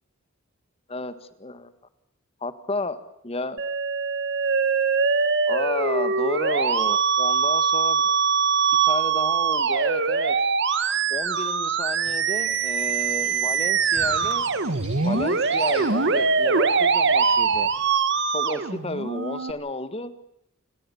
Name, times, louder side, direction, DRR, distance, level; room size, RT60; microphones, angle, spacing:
voice 1, 1.4-1.7 2.4-3.6 5.5-8.1 8.8-10.3 11.1-14.5 14.9-17.7 18.3-20.1, left 2 dB, 30° left, 12 dB, 1.7 m, -32 dB
Musical instrument, 3.6-19.5, right 5 dB, 60° right, 1.7 m, -23 dB
sound 1, 12.0-17.9, right 2 dB, 30° right, 7.3 m, -45 dB
28.5 x 19.5 x 7.2 m, 0.80 s
head